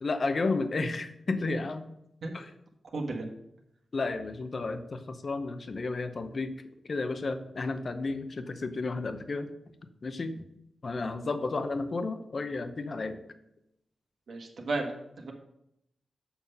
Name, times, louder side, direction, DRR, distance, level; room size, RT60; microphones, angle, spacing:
voice 1, 0.0-1.9 2.3-2.5 3.9-6.5 6.8-9.5 10.0-10.4 10.8-13.2, left 3 dB, 45° left, 9 dB, 0.7 m, -32 dB
voice 2, 2.9-3.3 14.3-15.3, right 2 dB, 70° right, 1 dB, 1.4 m, -34 dB
7.1 x 5.7 x 5.4 m, 0.80 s
wide cardioid pair, 95°, 0 cm